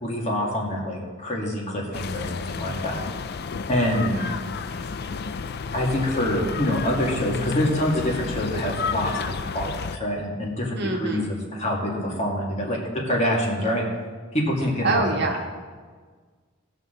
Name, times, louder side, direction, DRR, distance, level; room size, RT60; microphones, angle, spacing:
voice 1, 0.0-3.0 3.7-4.2 5.7-12.8 13.0-13.8 14.3-15.3, equal, 30° left, -2 dB, 2.2 m, -26 dB
sound 1, 1.9-10.0, left 5 dB, 50° left, 0.4 m, -31 dB
voice 2, 4.1-5.1 10.8-11.3 14.8-15.4, right 2 dB, 50° right, 1 dB, 1.4 m, -27 dB
19.0 x 6.4 x 3.9 m, 1.5 s
head